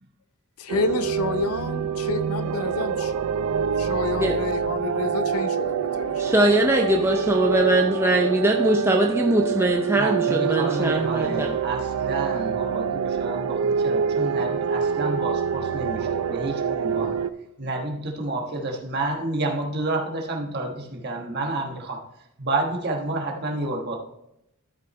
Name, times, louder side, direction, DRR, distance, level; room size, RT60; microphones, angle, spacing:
voice 1, 0.6-3.1 3.8-6.4, left 4 dB, 80° left, 11 dB, 0.6 m, -30 dB
sound 1, 0.7-17.3, right 7 dB, 80° right, 0.4 m, -26 dB
voice 2, 6.2-11.6, right 1 dB, 10° right, 2 dB, 0.5 m, -21 dB
voice 3, 9.9-17.1 17.6-22.0 22.4-24.0, right 2 dB, 45° right, 1 dB, 1.3 m, -29 dB
12.5 x 5.6 x 3.2 m, 0.81 s
head